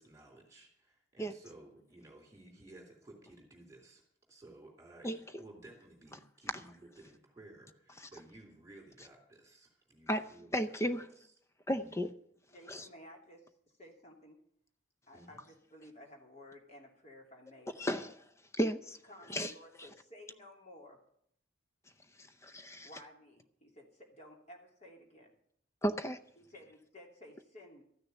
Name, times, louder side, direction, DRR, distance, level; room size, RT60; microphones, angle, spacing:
voice 1, 0.0-4.0 4.3-10.8 11.1-11.3 11.7-12.0 15.1-15.4, right 2 dB, 15° right, 3.2 m, -56 dB
voice 2, 5.0-5.4 10.1-11.1 11.7-12.1 12.7-12.8 17.8-18.2 18.6-19.0 19.3-19.5 22.4-22.9 25.8-26.2, equal, 15° left, 0.5 m, -34 dB
voice 3, 12.5-14.4 15.1-18.1 19.0-21.0 22.8-25.3 26.4-27.8, left 1 dB, 35° left, 2.8 m, -55 dB
14.0 x 6.6 x 10.0 m
head